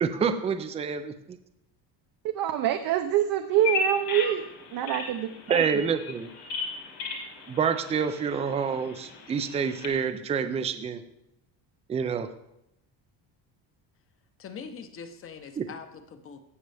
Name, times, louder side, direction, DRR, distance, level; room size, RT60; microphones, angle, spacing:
voice 1, 0.0-1.4 5.5-6.3 7.5-11.0 11.9-12.3 15.6-15.7, right 6 dB, 15° right, 9 dB, 0.3 m, -27 dB
voice 2, 2.2-4.4 4.7-5.8, right 11 dB, 55° right, 6 dB, 0.7 m, -26 dB
Bird vocalization bird call bird song, 3.5-9.9, left 4 dB, 55° left, 2.2 m, -35 dB
voice 3, 14.4-16.4, left 6 dB, 30° left, 9 dB, 0.8 m, -42 dB
16.5 x 6.5 x 3.4 m, 0.81 s
cardioid pair, 175°, 43 cm